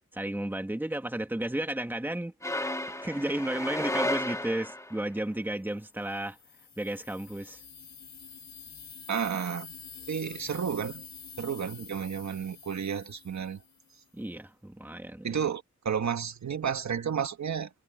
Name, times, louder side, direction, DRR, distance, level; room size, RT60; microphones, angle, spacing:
voice 1, 0.1-2.3 3.0-6.4 6.8-7.6 14.1-15.3, right 1 dB, 5° right, 1.8 m, -33 dB
sound 1, 2.4-5.0, left 1 dB, 10° left, 2.1 m, -33 dB
sound 2, 6.0-13.9, left 6 dB, 65° left, 3.8 m, -47 dB
voice 2, 9.1-9.7 10.1-11.0 11.4-13.6 15.2-17.7, right 7 dB, 60° right, 1.6 m, -32 dB
wide cardioid pair, 125°, 31 cm